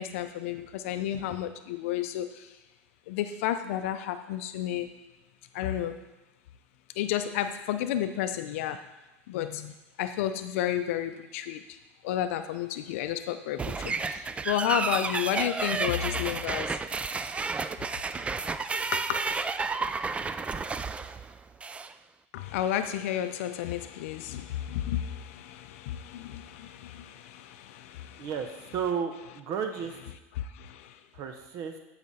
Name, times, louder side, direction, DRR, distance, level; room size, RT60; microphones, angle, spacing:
voice 1, 0.0-2.6 3.1-4.9 5.5-6.0 7.0-8.8 9.3-11.8 12.0-16.8 18.9-19.2 22.3-28.3 30.4-31.0, left 11 dB, 75° left, 9 dB, 0.5 m, -32 dB
sound 1, 13.6-21.9, right 4 dB, 15° right, 0.3 m, -31 dB
voice 2, 28.2-30.0 31.1-31.7, right 7 dB, 50° right, 6 dB, 0.7 m, -33 dB
10.5 x 4.9 x 4.1 m, 1.0 s
supercardioid pair, 110°, 7 cm